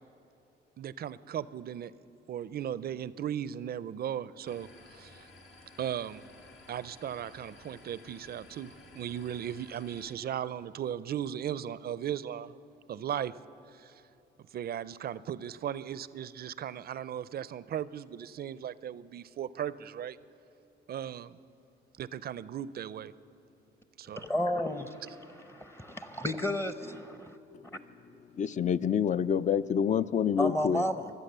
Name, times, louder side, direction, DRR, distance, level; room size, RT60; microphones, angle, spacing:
voice 1, 0.8-1.9 2.3-5.3 5.8-6.2 6.7-12.6 12.9-13.3 13.7-13.9 14.5-20.2 20.9-21.4 22.0-23.1 24.0-24.2, right 10 dB, 50° right, 0.5 m, -37 dB
sound 1, 4.5-10.1, left 3 dB, 70° left, 1.9 m, -54 dB
voice 2, 24.2-27.4 30.4-31.1, left 1 dB, 10° left, 0.7 m, -32 dB
voice 3, 28.3-30.9, left 8 dB, 40° left, 0.4 m, -27 dB
23.5 x 8.2 x 6.8 m
cardioid pair, 90°, 20 cm